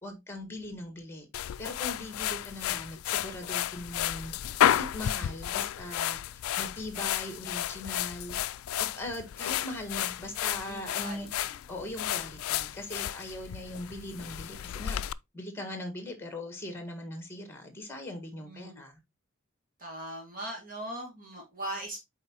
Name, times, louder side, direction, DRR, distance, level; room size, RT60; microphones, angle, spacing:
voice 1, 0.0-1.3 1.6-4.3 4.6-6.2 6.6-8.4 8.8-15.0 15.3-19.0, left 1 dB, 10° left, 1.7 m, -40 dB
sound 1, 1.3-15.1, left 11 dB, 85° left, 0.3 m, -32 dB
voice 2, 10.6-11.6 18.4-18.8 19.8-22.0, right 1 dB, 40° right, 2.5 m, -40 dB
7.9 x 4.8 x 3.0 m
head